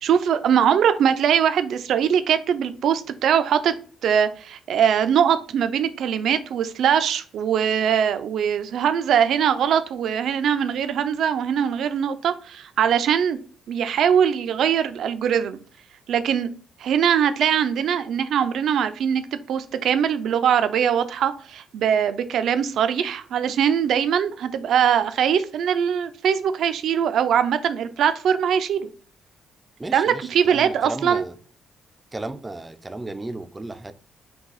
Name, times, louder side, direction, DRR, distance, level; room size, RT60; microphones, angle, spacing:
voice 1, 0.0-3.7 4.0-13.4 13.7-15.6 16.1-16.5 16.8-19.2 19.5-28.9 29.9-31.2, right 8 dB, 70° right, 11 dB, 0.5 m, -21 dB
voice 2, 29.8-31.4 32.1-33.9, right 2 dB, 20° right, 10 dB, 0.4 m, -34 dB
5.4 x 2.3 x 4.0 m, 0.42 s
cardioid pair, 90°, 0 cm